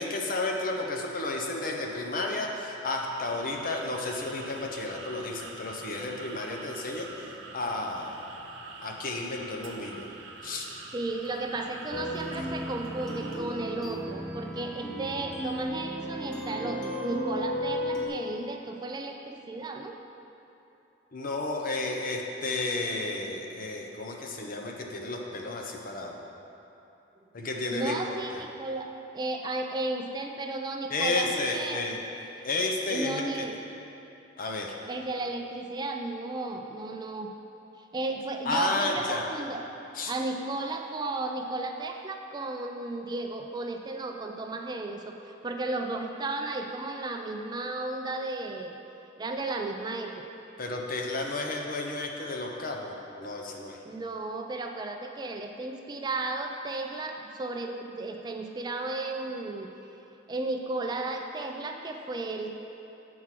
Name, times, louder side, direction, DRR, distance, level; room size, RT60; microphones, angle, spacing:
voice 1, 0.0-7.1 7.5-8.3 8.8-10.1 10.4-10.7 12.3-12.5 21.1-26.2 27.3-28.2 30.9-32.0 32.4-33.5 34.4-34.8 38.4-39.2 39.9-40.1 50.6-53.8, left 2 dB, 50° left, 1 dB, 0.8 m, -32 dB
sound 1, 3.1-13.4, right 3 dB, 85° right, 0.7 m, -45 dB
voice 2, 10.9-20.0 27.7-31.8 32.4-32.5 32.9-33.6 34.9-37.3 37.9-39.6 40.0-48.8 49.2-50.1 53.9-59.7 60.3-62.5, right 2 dB, 20° right, 4 dB, 0.3 m, -34 dB
sound 2, 11.9-18.1, equal, 5° left, 0.8 m, -35 dB
7.3 x 4.7 x 5.8 m, 2.9 s
head